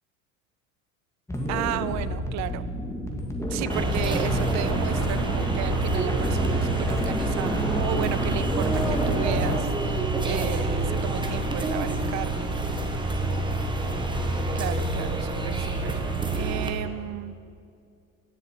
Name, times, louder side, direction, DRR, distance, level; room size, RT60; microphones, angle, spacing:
sound 1, 1.3-9.6, left 1 dB, 5° left, 1.7 m, -29 dB
voice 1, 1.5-2.6 3.5-12.4 14.5-16.0 16.3-17.4, right 13 dB, 45° right, 15 dB, 0.6 m, -34 dB
sound 2, 3.7-16.7, right 3 dB, 10° right, 1.3 m, -27 dB
17.5 x 6.9 x 4.5 m, 2.4 s
hypercardioid pair, 80°, 40 cm